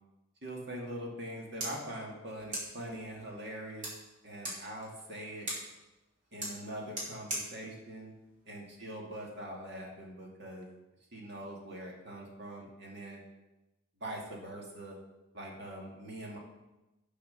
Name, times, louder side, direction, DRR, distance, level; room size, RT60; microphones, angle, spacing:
voice 1, 0.4-3.9 4.2-5.5 6.3-8.1 8.5-10.7 11.1-13.2 14.0-15.0 15.3-16.4, right 1 dB, 55° right, -1 dB, 2.4 m, -43 dB
sound 1, 1.2-9.2, right 1 dB, 40° right, 4.2 m, -44 dB
13.0 x 5.0 x 6.8 m, 1.0 s
head